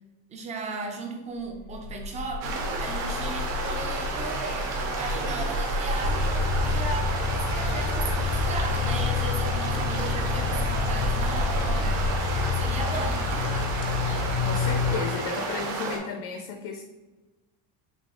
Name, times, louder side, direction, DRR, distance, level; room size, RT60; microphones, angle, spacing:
voice 1, 0.3-6.3 6.6-12.0 12.5-13.5, right 3 dB, 20° right, 2 dB, 0.4 m, -36 dB
sound 1, 1.5-12.2, left 2 dB, 70° right, 1.4 m, -32 dB
sound 2, 2.4-16.0, right 4 dB, 45° right, 0.7 m, -32 dB
sound 3, 6.0-14.9, left 6 dB, 85° left, 0.9 m, -28 dB
voice 2, 14.5-16.8, left 5 dB, 55° left, 3 dB, 0.5 m, -33 dB
6.6 x 2.3 x 2.9 m, 1.2 s
cardioid pair, 175°, 39 cm